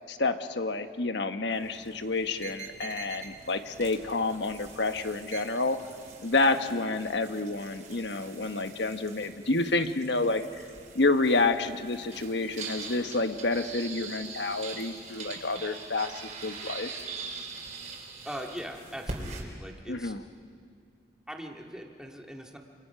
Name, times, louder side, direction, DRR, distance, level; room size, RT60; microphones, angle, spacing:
voice 1, 0.1-5.8 6.2-10.4 10.9-16.1 16.4-16.9 19.9-20.2, left 3 dB, 70° left, 8 dB, 1.3 m, -29 dB
sound 1, 1.5-19.4, right 4 dB, 45° right, 4.1 m, -43 dB
voice 2, 18.2-20.1 21.3-22.6, equal, 5° right, 1 dB, 2.0 m, -41 dB
28.5 x 28.0 x 5.8 m, 2.1 s
head